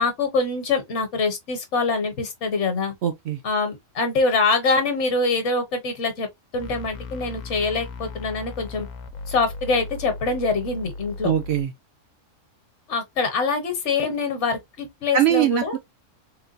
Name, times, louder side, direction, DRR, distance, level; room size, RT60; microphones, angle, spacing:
voice 1, 0.0-2.9 3.4-6.3 6.5-8.9 9.3-11.3 12.9-15.8, left 4 dB, 65° left, 1.2 m, -24 dB
voice 2, 3.0-3.4 11.2-11.7 15.1-15.8, right 10 dB, 65° right, 0.8 m, -21 dB
sound 1, 6.6-11.6, left 3 dB, 85° left, 1.0 m, -37 dB
3.8 x 2.2 x 2.4 m
omnidirectional pair, 1.3 m